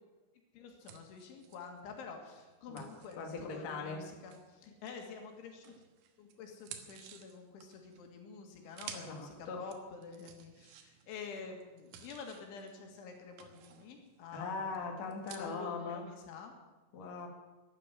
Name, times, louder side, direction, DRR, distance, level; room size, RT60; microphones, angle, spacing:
voice 1, 0.5-5.8 6.2-14.8 15.4-16.5, left 5 dB, 75° left, 3 dB, 4.2 m, -48 dB
sound 1, 0.8-5.2 5.6-15.4, right 9 dB, 90° right, 3.9 m, -54 dB
voice 2, 3.2-4.0 8.9-9.6 14.3-16.0 16.9-17.3, left 4 dB, 50° left, 2 dB, 2.3 m, -40 dB
13.0 x 9.9 x 9.6 m, 1.2 s
omnidirectional pair, 5.7 m